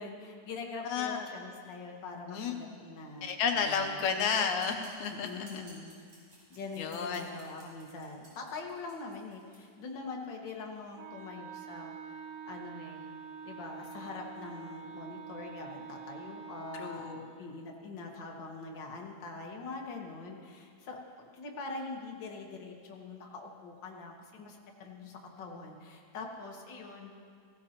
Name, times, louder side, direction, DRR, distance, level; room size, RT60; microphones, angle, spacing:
voice 1, 0.0-3.3 3.5-4.0 5.1-6.0 6.5-11.9 12.4-13.0 13.4-27.2, left 3 dB, 60° left, 0 dB, 1.2 m, -43 dB
voice 2, 0.8-1.3 2.3-2.8 3.2-5.3 5.5-5.6 6.8-7.3 16.8-17.4, left 6 dB, 75° left, 4 dB, 2.0 m, -32 dB
sound 1, 4.6-9.6, right 1 dB, 40° right, 4.0 m, -58 dB
Wind instrument woodwind instrument, 11.0-17.3, right 6 dB, 85° right, 2.4 m, -46 dB
16.5 x 16.0 x 2.9 m, 2.1 s
omnidirectional pair, 3.8 m